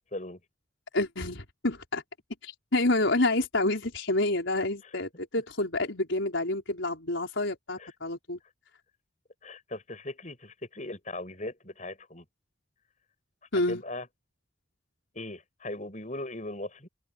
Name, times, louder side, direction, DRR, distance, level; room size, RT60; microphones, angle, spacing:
voice 1, 0.9-2.0 2.4-8.4 13.5-13.8, left 2 dB, 75° left, 4.4 m, -28 dB
voice 2, 9.4-12.2 13.7-14.1 15.1-16.9, left 1 dB, 40° left, 7.9 m, -39 dB
head